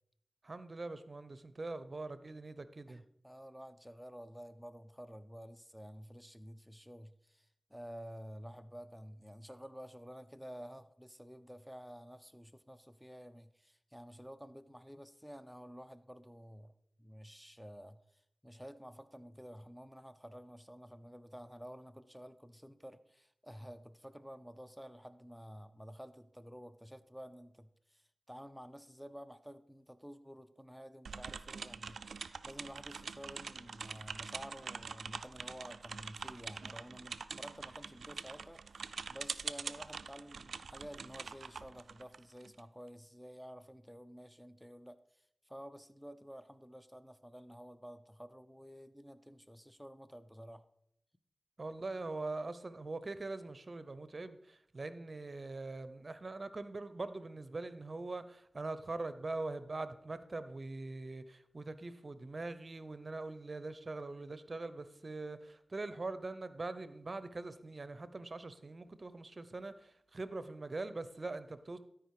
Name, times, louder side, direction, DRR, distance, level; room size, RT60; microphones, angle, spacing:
voice 1, 0.4-3.0 51.6-71.8, right 3 dB, 50° right, 13 dB, 0.7 m, -42 dB
voice 2, 2.9-16.7 17.0-32.2 32.4-45.0 45.5-50.6, equal, ahead, 12 dB, 0.6 m, -51 dB
sound 1, 31.0-42.6, right 5 dB, 90° right, 0.3 m, -45 dB
12.5 x 4.9 x 4.8 m, 0.75 s
cardioid pair, 45°, 0 cm